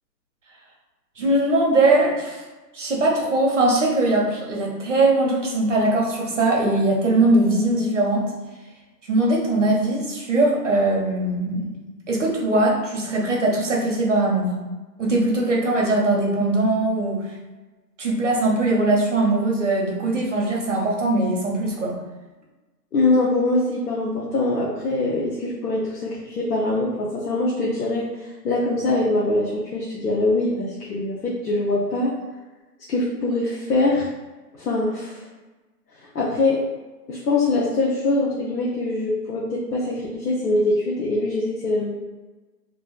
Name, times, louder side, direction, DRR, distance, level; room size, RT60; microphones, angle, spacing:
voice 1, 1.2-2.4 2.7-8.2 9.1-11.8 12.1-14.5 15.0-17.2 18.0-22.0, right 2 dB, 50° right, -2 dB, 0.5 m, -21 dB
voice 2, 22.9-28.1 28.4-32.1 32.9-34.1 34.6-35.2 36.1-36.6 37.1-41.9, left 2 dB, 70° left, -5 dB, 0.7 m, -23 dB
2.4 x 2.3 x 2.3 m, 1.2 s
hypercardioid pair, 175°, 49 cm